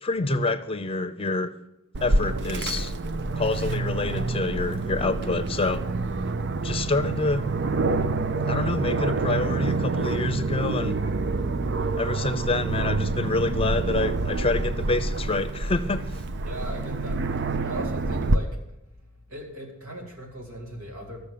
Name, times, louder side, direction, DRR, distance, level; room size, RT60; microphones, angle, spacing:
voice 1, 0.0-1.5 2.0-2.9 3.3-5.8 6.6-7.4 8.4-11.0 12.0-16.0, left 3 dB, 25° left, 11 dB, 0.7 m, -27 dB
Aircraft, 1.9-18.4, right 3 dB, 60° right, 0.6 m, -27 dB
voice 2, 16.4-17.2 17.6-18.6 19.3-21.3, right 1 dB, 75° right, 0 dB, 3.8 m, -38 dB
14.0 x 6.5 x 8.5 m, 0.93 s
head